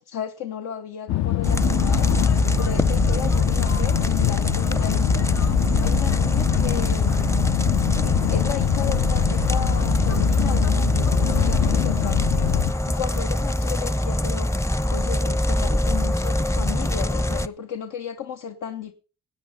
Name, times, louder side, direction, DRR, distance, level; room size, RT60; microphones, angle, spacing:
voice 1, 0.0-2.1 2.6-5.5 5.8-7.3 8.0-12.3 12.8-14.5 14.9-18.9, left 8 dB, 85° left, 5 dB, 1.2 m, -34 dB
sound 1, 1.1-12.7, left 13 dB, 65° left, 0.6 m, -24 dB
sound 2, 1.4-17.5, left 1 dB, 10° left, 0.5 m, -23 dB
18.5 x 8.5 x 5.4 m, 0.38 s
cardioid pair, 90°, 30 cm